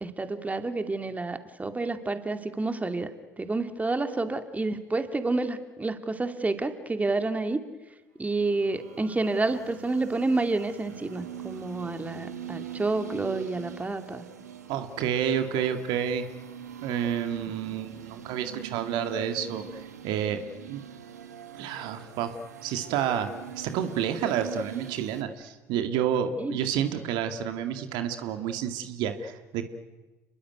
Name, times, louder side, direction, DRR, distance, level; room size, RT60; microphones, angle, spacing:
voice 1, 0.0-7.6 8.2-14.2 26.4-26.6, right 3 dB, 15° right, 8 dB, 2.4 m, -29 dB
sound 1, 8.3-25.2, right 9 dB, 85° right, 1.8 m, -43 dB
voice 2, 14.7-16.3 16.8-20.4 20.7-20.8 21.5-22.4 22.6-23.3 23.6-29.7, right 9 dB, 65° right, 8 dB, 2.1 m, -29 dB
29.5 x 21.0 x 9.4 m, 1.2 s
hypercardioid pair, 60°, 9 cm